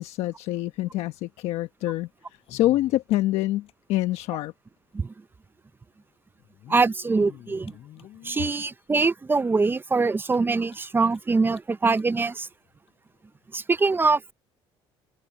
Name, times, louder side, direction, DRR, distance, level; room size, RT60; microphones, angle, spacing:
voice 1, 0.0-4.5, left 15 dB, 80° left, 1.2 m, -26 dB
sound 1, 2.3-3.7 4.0-4.1 4.3-4.4 5.4-5.5 6.4-8.7 9.3-9.4 9.7-9.8 10.2-11.2 11.5-11.6 11.9-12.1 12.9-13.0, left 13 dB, 65° left, 6.1 m, -49 dB
voice 2, 6.7-7.7 8.2-12.5 13.5-14.3, right 4 dB, 20° right, 0.7 m, -23 dB
cardioid pair, 110°, 11 cm